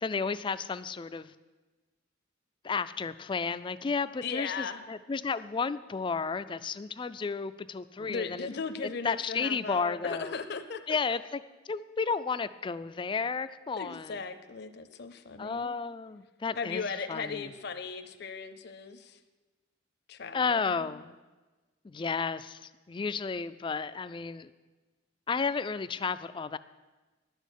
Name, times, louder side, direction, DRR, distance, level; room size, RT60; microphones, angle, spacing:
voice 1, 0.0-1.3 2.6-8.5 9.0-10.4 10.9-11.4 11.7-14.2 15.4-16.8 17.1-17.5 20.3-21.2 21.8-24.5 25.3-26.6, left 5 dB, 25° left, 14 dB, 0.3 m, -32 dB
voice 2, 4.2-4.8 8.0-10.8 13.8-15.8 16.5-19.2 20.1-20.9, left 5 dB, 55° left, 8 dB, 0.6 m, -37 dB
11.0 x 6.3 x 8.2 m, 1.2 s
head